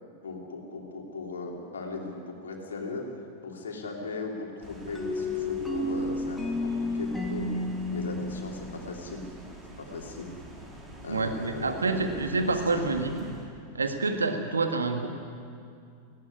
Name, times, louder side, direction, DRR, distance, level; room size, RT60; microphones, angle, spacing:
voice 1, 0.2-3.1 3.4-7.5 7.9-9.3 9.8-10.3 11.0-12.1 12.7-12.9, left 3 dB, 70° left, 1 dB, 3.3 m, -38 dB
sound 1, 4.6-13.5, right 1 dB, 15° right, 3.7 m, -46 dB
sound 2, 4.9-9.6, left 2 dB, ahead, 3.0 m, -32 dB
voice 2, 11.1-13.3 13.7-15.1, right 3 dB, 75° right, 6 dB, 1.7 m, -28 dB
19.0 x 16.0 x 9.9 m, 2.4 s
figure-of-eight pair, 90°, 0 cm